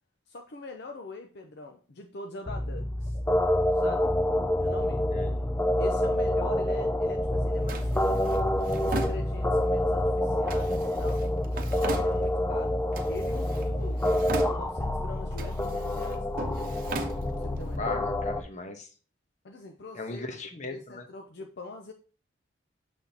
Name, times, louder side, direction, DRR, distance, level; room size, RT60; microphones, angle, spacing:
voice 1, 0.3-3.2 3.7-4.1 4.6-5.1 5.8-8.5 8.8-11.3 11.7-12.8 13.1-16.7 17.4-18.0 19.4-20.3 20.7-21.9, left 2 dB, 60° left, 5 dB, 0.7 m, -43 dB
sound 1, 2.5-18.4, left 1 dB, 10° left, 0.4 m, -27 dB
voice 2, 5.1-5.4 17.8-18.9 19.9-21.0, left 3 dB, 40° left, 5 dB, 1.1 m, -37 dB
Drawer open or close, 7.7-9.8 10.5-12.6 12.9-13.7 14.0-14.9 15.3-17.8, right 2 dB, 50° right, 0.9 m, -39 dB
7.1 x 6.0 x 2.9 m, 0.36 s
head